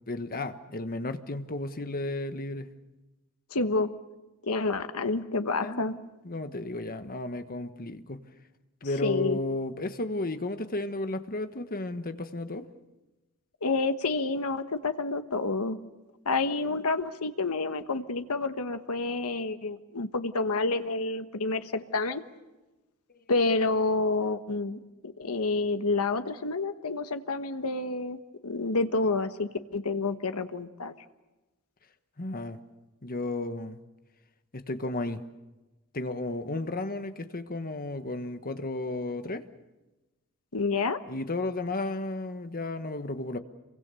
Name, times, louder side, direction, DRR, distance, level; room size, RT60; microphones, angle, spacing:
voice 1, 0.1-2.7 5.6-6.0 6.2-8.2 8.8-12.7 32.2-32.6 33.0-33.8 34.5-35.2 35.9-39.4 41.1-43.4, left 2 dB, 40° left, 9 dB, 1.4 m, -33 dB
voice 2, 3.5-3.9 4.4-5.9 9.0-9.4 13.6-15.8 16.2-22.2 23.3-28.2 28.4-30.9 40.5-41.0, left 3 dB, 80° left, 9 dB, 1.3 m, -29 dB
28.0 x 23.5 x 7.0 m, 1.1 s
head